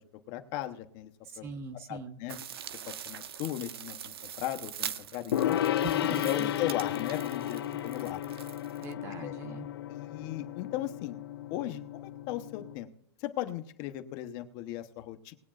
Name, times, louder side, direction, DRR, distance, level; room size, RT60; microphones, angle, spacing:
voice 1, 0.3-1.1 1.4-1.5 1.9-2.4 2.9-5.6 6.1-8.2 9.1-9.3 9.9-11.2 11.5-12.9 13.2-15.3, left 13 dB, 30° left, 7 dB, 0.8 m, -37 dB
voice 2, 1.2-2.2 5.8-6.5 8.8-9.7, right 3 dB, 20° right, 10 dB, 0.7 m, -41 dB
sound 1, 2.3-8.9, right 9 dB, 65° right, 0.8 m, -43 dB
Gong, 5.3-12.8, left 12 dB, 65° left, 0.8 m, -33 dB
20.5 x 8.5 x 2.4 m, 0.78 s
hypercardioid pair, 160°, 14 cm